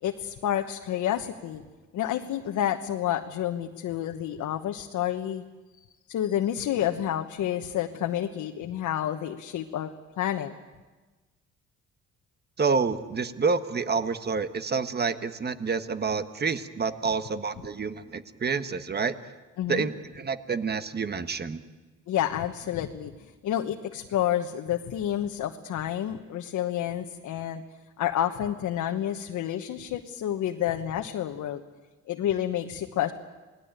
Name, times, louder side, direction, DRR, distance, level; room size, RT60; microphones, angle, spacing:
voice 1, 0.0-1.6 1.9-5.4 6.1-9.9 10.2-10.5 19.6-19.9 22.1-27.6 28.0-31.6 32.1-33.1, left 11 dB, 80° left, 4 dB, 1.2 m, -29 dB
voice 2, 12.6-19.1 19.7-21.6, right 5 dB, 35° right, 11 dB, 1.4 m, -28 dB
28.5 x 19.5 x 9.1 m, 1.2 s
cardioid pair, 90°, 30 cm